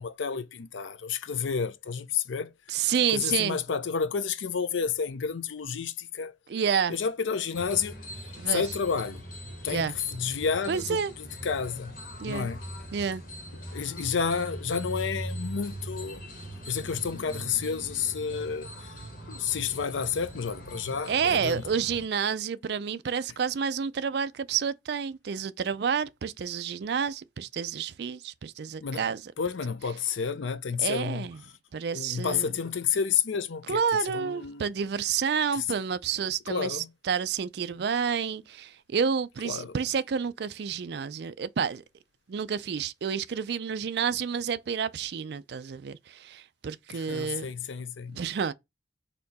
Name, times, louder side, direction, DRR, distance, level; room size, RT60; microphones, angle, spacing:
voice 1, 0.0-2.5 3.1-6.3 6.9-7.9 8.5-9.2 9.6-11.9 12.2-12.6 13.7-16.2 16.7-18.9 19.3-21.6 28.8-29.0 29.4-31.3 31.9-33.8 34.1-34.6 35.6-35.7 36.5-36.9 39.4-39.7 46.9-48.2, left 6 dB, 85° left, 0.5 m, -30 dB
voice 2, 2.7-3.6 6.5-7.0 8.4-8.6 9.7-9.9 10.7-11.1 12.2-12.5 12.9-13.2 21.1-29.3 30.8-31.4 31.7-32.5 33.7-41.8 42.3-47.5 48.1-48.5, right 7 dB, 60° right, 0.4 m, -29 dB
sound 1, 7.5-22.1, right 1 dB, 50° left, 1.6 m, -41 dB
4.3 x 2.8 x 4.0 m
head